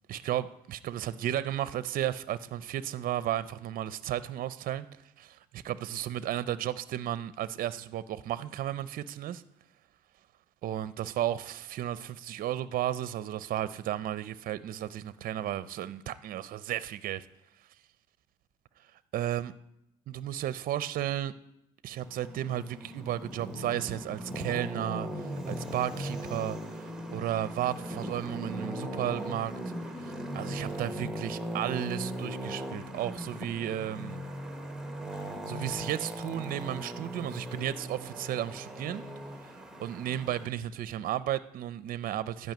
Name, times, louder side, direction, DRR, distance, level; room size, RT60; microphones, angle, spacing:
voice 1, 0.1-9.4 10.6-17.3 18.9-19.5 20.1-21.3 21.8-29.5 30.3-34.2 35.2-39.0 39.4-42.5, right 12 dB, 55° right, 0.5 m, -34 dB
Traffic noise roadway noise, 22.0-40.5, equal, 5° right, 1.1 m, -39 dB
12.0 x 5.5 x 9.1 m
cardioid pair, 110°, 17 cm